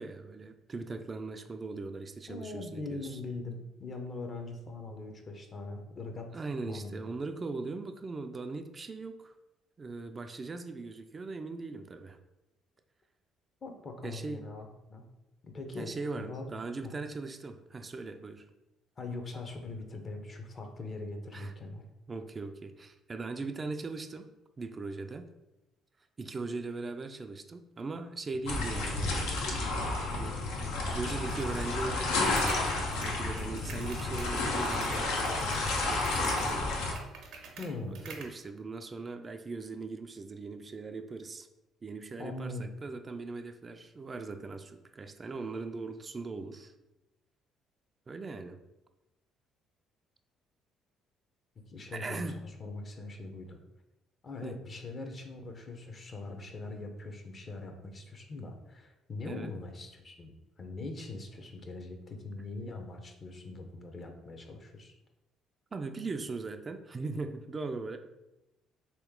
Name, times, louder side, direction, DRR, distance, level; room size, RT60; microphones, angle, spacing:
voice 1, 0.0-3.2 6.3-9.3 9.8-12.2 14.0-14.5 15.8-18.5 21.3-21.5 22.1-24.3 24.6-25.3 26.2-29.3 30.1-32.7 33.0-35.3 35.8-36.6 37.9-41.5 41.8-46.7 48.1-48.6 51.9-52.4 54.4-54.6 59.3-59.5 65.7-68.0, right 3 dB, 35° right, 7 dB, 0.3 m, -39 dB
voice 2, 2.3-7.1 13.6-15.0 15.4-16.5 16.8-16.9 19.0-21.8 28.4-28.6 37.6-38.0 42.2-42.7 51.7-53.6 54.2-60.3 60.6-64.9, left 2 dB, 40° left, 4 dB, 0.7 m, -41 dB
sound 1, 28.5-36.9, left 2 dB, 85° left, 0.6 m, -31 dB
keyboard Typing, 31.3-38.4, right 5 dB, 75° right, 0.7 m, -49 dB
3.1 x 2.9 x 3.6 m, 0.95 s
supercardioid pair, 70°, 0 cm